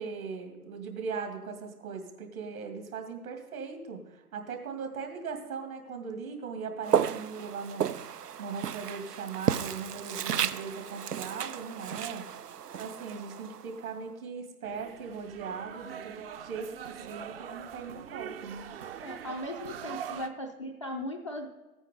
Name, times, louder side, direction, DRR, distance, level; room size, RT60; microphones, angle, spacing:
voice 1, 0.0-7.9 8.4-12.2 12.8-18.7, right 5 dB, 65° right, 4 dB, 2.5 m, -39 dB
Walk footsteps, 6.8-14.0, right 8 dB, 90° right, 0.6 m, -33 dB
sound 1, 14.6-20.3, right 9 dB, 40° right, 0.7 m, -42 dB
voice 2, 19.0-21.5, left 1 dB, 25° left, 3 dB, 0.3 m, -38 dB
15.5 x 9.0 x 3.9 m, 1.2 s
figure-of-eight pair, 130°, 46 cm